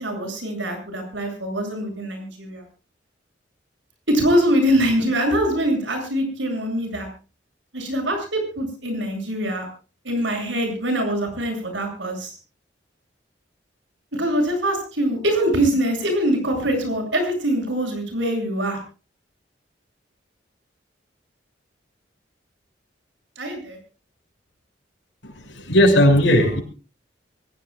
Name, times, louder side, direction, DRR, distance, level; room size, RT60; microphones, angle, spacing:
voice 1, 0.0-2.6 4.1-7.1 7.7-9.7 10.0-12.4 14.1-18.8 23.4-23.8, equal, 85° right, 4 dB, 7.8 m, -23 dB
voice 2, 25.2-26.6, left 1 dB, 85° left, 3 dB, 6.6 m, -17 dB
25.0 x 17.0 x 2.4 m, 0.35 s
head